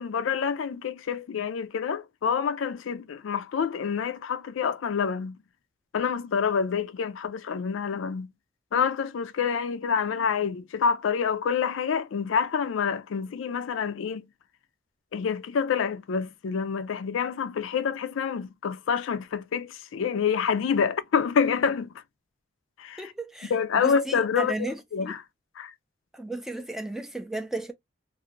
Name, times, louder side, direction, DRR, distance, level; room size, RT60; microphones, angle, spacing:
voice 1, 0.0-5.4 5.9-8.3 8.7-14.3 15.1-21.9 22.8-23.1 23.5-25.2 25.6-25.7, left 6 dB, 80° left, 0.4 m, -27 dB
voice 2, 23.0-25.1 26.1-27.7, right 2 dB, ahead, 0.3 m, -34 dB
2.5 x 2.5 x 2.8 m
head